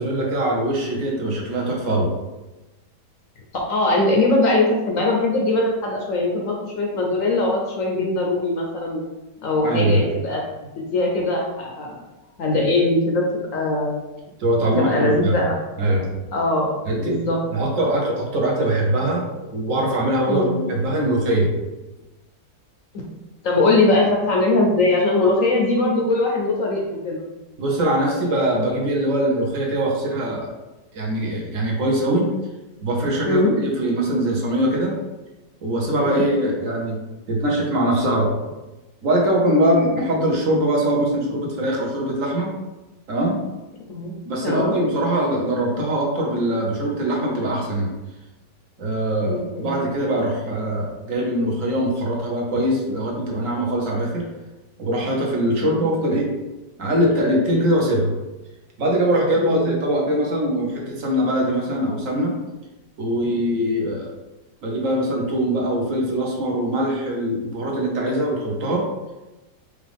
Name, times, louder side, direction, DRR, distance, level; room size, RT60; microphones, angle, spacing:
voice 1, 0.0-2.1 9.6-10.0 14.4-15.4 15.8-16.1 16.9-17.2 17.5-21.5 27.6-30.5 30.9-32.3 32.8-34.9 35.6-37.0 37.3-38.3 39.0-42.5 43.1-43.3 44.3-47.9 48.8-54.2 54.8-56.3 56.8-58.1 58.8-62.3 63.0-64.1 64.6-68.9, right 1 dB, 55° right, -2 dB, 1.1 m, -22 dB
voice 2, 3.7-9.0 9.4-10.4 10.8-12.0 12.4-13.2 13.5-14.0 14.8-15.6 16.3-16.7 17.0-17.4 20.3-20.6 22.9-23.1 23.4-27.2 33.3-33.6 36.0-36.3 43.9-44.1 44.4-44.8 49.2-49.7 55.6-55.9 59.4-59.7, left 2 dB, 65° left, -1 dB, 0.9 m, -21 dB
4.8 x 2.5 x 3.4 m, 1.1 s
omnidirectional pair, 1.9 m